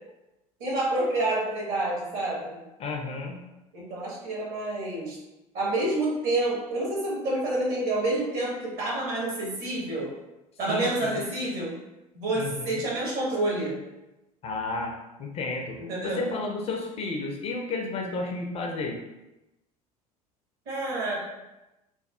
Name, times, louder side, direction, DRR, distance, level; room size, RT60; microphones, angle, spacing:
voice 1, 0.6-2.6 3.7-5.2 5.5-10.1 10.6-11.7 12.1-13.8 15.8-16.2 20.7-21.2, right 2 dB, 50° right, -3 dB, 1.1 m, -28 dB
voice 2, 2.8-3.4 10.7-11.2 12.4-12.8 14.4-14.9 15.2-19.0, left 3 dB, 35° left, 1 dB, 0.4 m, -32 dB
3.0 x 2.3 x 2.3 m, 0.98 s
figure-of-eight pair, 70°, 19 cm